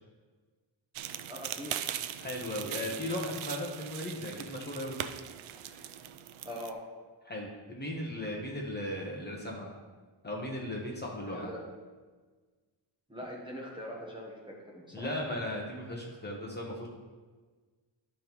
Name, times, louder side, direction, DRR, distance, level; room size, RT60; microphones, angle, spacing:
sound 1, 1.0-6.7, right 10 dB, 85° right, 0.5 m, -40 dB
voice 1, 1.3-1.8 6.4-6.8 11.3-11.6 13.1-15.1, equal, 10° right, -3 dB, 1.0 m, -42 dB
voice 2, 2.2-5.0 5.6-5.8 7.2-9.7 10.2-11.5 14.9-16.9, left 1 dB, 20° left, -2 dB, 0.9 m, -37 dB
11.5 x 5.3 x 3.0 m, 1.4 s
wide cardioid pair, 180°, 47 cm